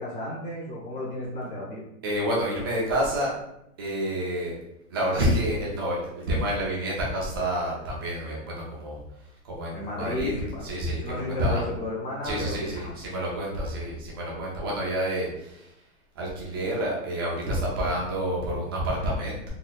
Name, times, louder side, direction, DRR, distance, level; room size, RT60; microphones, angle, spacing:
voice 1, 0.0-1.8 9.7-10.6 11.0-12.9 17.7-17.9, left 2 dB, 40° left, -4 dB, 1.4 m, -33 dB
voice 2, 2.0-3.4 3.8-4.6 4.9-10.3 10.6-11.7 12.2-15.7 16.1-19.5, equal, 20° right, -4 dB, 0.4 m, -29 dB
4.1 x 2.8 x 2.3 m, 0.80 s
hypercardioid pair, 155°, 43 cm